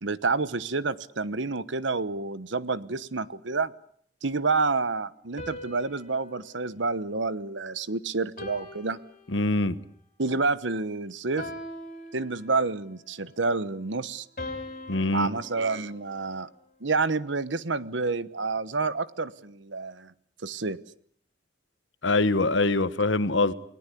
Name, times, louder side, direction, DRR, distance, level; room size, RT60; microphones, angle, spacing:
voice 1, 0.0-3.7 4.2-9.0 10.2-11.5 12.1-14.3 15.1-16.5 16.8-20.1 20.4-20.8, right 3 dB, 75° right, 1.1 m, -29 dB
sound 1, 5.4-7.8 8.4-9.8 11.4-12.8 14.4-16.7, left 1 dB, 45° left, 6.0 m, -42 dB
voice 2, 9.3-9.8 14.9-15.3 22.0-23.5, left 2 dB, 80° left, 1.4 m, -24 dB
29.0 x 19.0 x 8.4 m
head